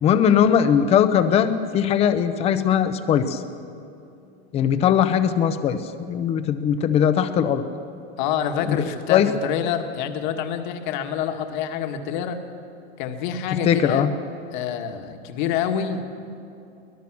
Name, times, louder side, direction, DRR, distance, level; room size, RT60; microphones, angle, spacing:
voice 1, 0.0-3.4 4.5-7.6 8.7-8.8 9.1-9.3 13.6-14.1, left 8 dB, 20° left, 11 dB, 0.8 m, -20 dB
voice 2, 8.2-12.4 13.0-14.1 14.5-16.0, left 8 dB, 45° left, 6 dB, 1.7 m, -27 dB
24.0 x 19.0 x 6.1 m, 2.6 s
supercardioid pair, 160°, 33 cm